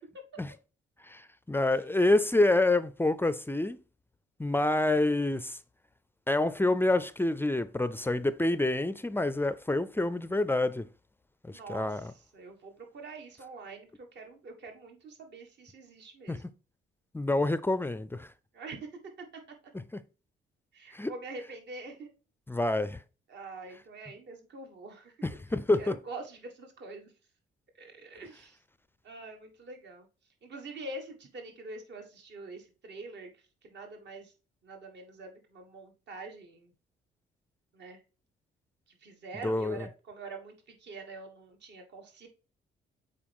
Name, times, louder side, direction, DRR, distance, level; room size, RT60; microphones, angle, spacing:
voice 1, 1.0-3.8 4.4-5.6 6.3-10.9 11.4-12.1 16.3-16.4 17.1-18.3 19.9-20.0 20.9-21.1 22.5-23.0 25.2-25.9 39.4-39.9, left 2 dB, 10° left, 0.4 m, -27 dB
voice 2, 11.5-16.6 18.5-18.9 19.2-19.3 20.7-22.1 23.3-25.1 25.5-27.1 27.8-28.6 29.0-30.1 30.4-34.3 34.6-36.7 37.7-38.0 38.9-42.3, right 3 dB, 60° right, 1.7 m, -45 dB
7.4 x 4.6 x 3.5 m
cardioid pair, 90°, 20 cm